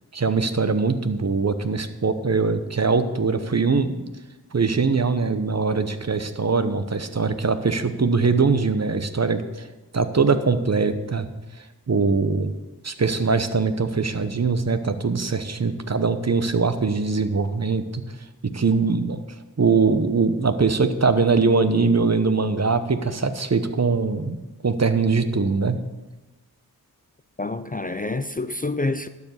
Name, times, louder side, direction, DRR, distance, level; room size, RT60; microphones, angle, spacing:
voice 1, 0.1-4.0 4.5-9.7 9.9-11.3 11.9-12.5 12.8-18.0 18.5-19.2 19.6-24.4 24.6-25.8, right 4 dB, 45° right, 0.9 m, -22 dB
voice 2, 27.4-29.1, left 2 dB, 25° left, 0.5 m, -27 dB
12.0 x 4.9 x 8.0 m
cardioid pair, 45°, 38 cm